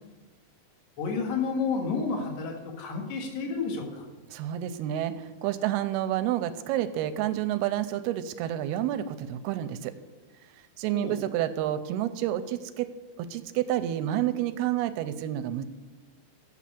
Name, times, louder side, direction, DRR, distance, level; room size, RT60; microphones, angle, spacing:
voice 1, 1.0-4.1 10.9-11.2, left 4 dB, 50° left, 1 dB, 2.2 m, -30 dB
voice 2, 4.3-9.9 10.8-12.9 13.2-15.6, right 12 dB, 80° right, 11 dB, 2.4 m, -29 dB
8.4 x 7.3 x 8.5 m, 1.2 s
omnidirectional pair, 4.9 m